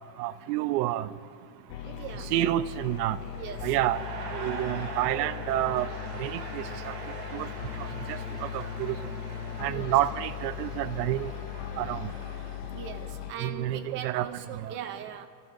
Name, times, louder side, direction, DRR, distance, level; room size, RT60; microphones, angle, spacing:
voice 1, 0.2-1.1 2.3-3.2 3.6-4.0 4.3-5.9 6.2-6.9 7.3-7.5 7.8-9.0 9.6-11.3 11.8-12.1 13.4-14.3 14.6-14.7, right 14 dB, 80° right, 15 dB, 0.7 m, -29 dB
sound 1, 1.7-13.3, left 11 dB, 40° left, 0.6 m, -38 dB
voice 2, 1.8-2.3 3.4-3.8 9.6-9.9 12.7-15.3, right 8 dB, 25° right, 7 dB, 0.6 m, -40 dB
sound 2, 2.6-12.6, right 4 dB, 55° right, 2.6 m, -42 dB
28.5 x 14.0 x 2.6 m, 2.5 s
cardioid pair, 175°, 48 cm